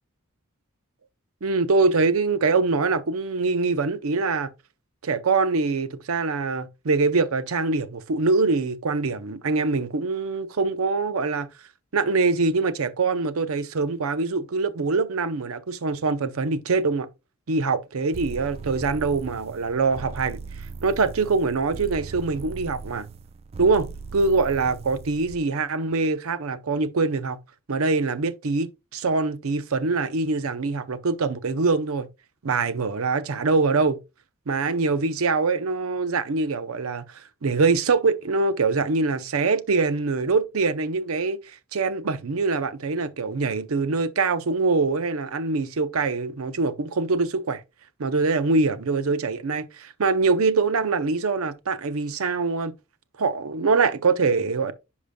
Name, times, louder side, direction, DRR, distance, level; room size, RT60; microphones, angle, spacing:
voice 1, 1.4-4.5 5.0-11.5 11.9-17.1 17.5-20.4 20.8-23.1 23.6-27.4 27.7-32.1 32.4-34.0 34.5-41.4 41.7-47.6 48.0-52.7 53.2-54.7, right 4 dB, 75° right, 0.6 m, -24 dB
sound 1, 18.1-25.4, right 4 dB, 30° right, 0.3 m, -38 dB
10.5 x 5.0 x 2.2 m
head